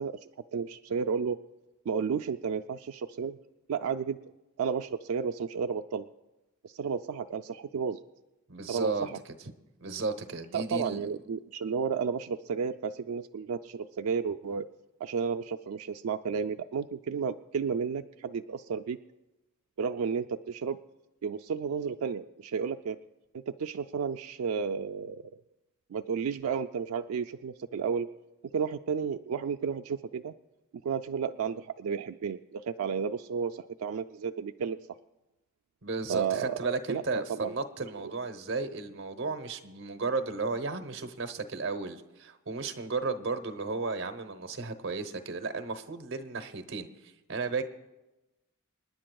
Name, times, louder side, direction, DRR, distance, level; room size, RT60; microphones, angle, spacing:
voice 1, 0.0-1.4 1.9-3.4 3.7-4.2 4.6-6.1 6.6-8.0 8.7-9.2 10.5-14.7 15.0-19.0 19.8-20.8 21.2-23.0 23.3-25.4 25.9-28.1 28.5-30.3 30.8-34.8 36.1-37.5, right 6 dB, 85° right, 6 dB, 0.4 m, -32 dB
voice 2, 8.5-9.1 9.8-11.1 35.8-46.9 47.3-47.6, right 3 dB, 60° right, 7 dB, 0.9 m, -34 dB
28.0 x 10.0 x 2.3 m, 1.0 s
head